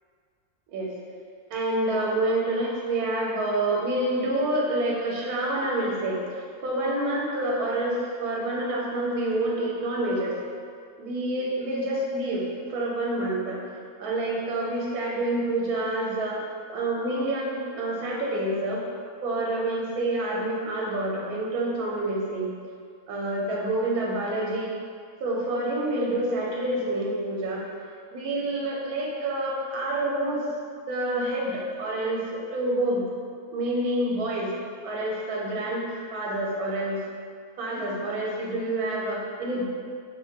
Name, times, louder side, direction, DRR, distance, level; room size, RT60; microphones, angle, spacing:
voice 1, 1.5-10.4 11.0-13.6 14.0-16.4 16.7-18.8 19.2-22.5 23.1-24.7 25.2-27.6 28.1-30.4 30.9-33.0 33.5-34.5 34.8-37.0 37.6-39.6, right 1 dB, 85° right, -3 dB, 1.1 m, -27 dB
3.0 x 2.1 x 2.7 m, 2.2 s
omnidirectional pair, 1.5 m